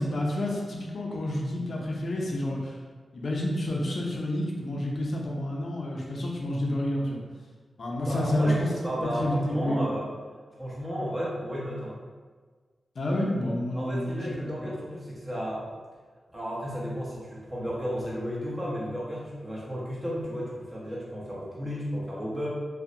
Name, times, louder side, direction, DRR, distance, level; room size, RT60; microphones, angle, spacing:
voice 1, 0.0-2.8 3.1-7.2 7.8-8.7 9.0-9.8 13.0-14.2, left 1 dB, 65° left, -2 dB, 0.4 m, -29 dB
voice 2, 8.0-10.1 10.6-12.0 13.7-15.6 16.3-22.5, equal, 20° right, -7 dB, 0.8 m, -33 dB
2.6 x 2.0 x 2.5 m, 1.5 s
cardioid pair, 75°, 0 cm